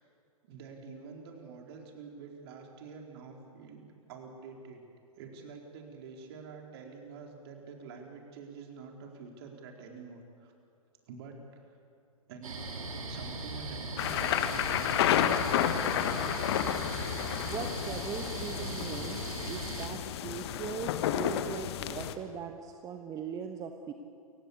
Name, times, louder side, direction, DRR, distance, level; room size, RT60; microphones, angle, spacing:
voice 1, 0.4-4.8 5.2-10.5 11.1-11.8 12.3-15.5, right 5 dB, 45° right, 2 dB, 4.3 m, -48 dB
sound 1, 12.4-19.9, right 2 dB, 70° right, 3.8 m, -39 dB
sound 2, 14.0-22.1, left 10 dB, 45° left, 1.4 m, -31 dB
voice 2, 17.4-23.9, right 7 dB, 20° right, 5 dB, 1.3 m, -40 dB
29.0 x 16.0 x 8.5 m, 2.6 s
figure-of-eight pair, 110°, 18 cm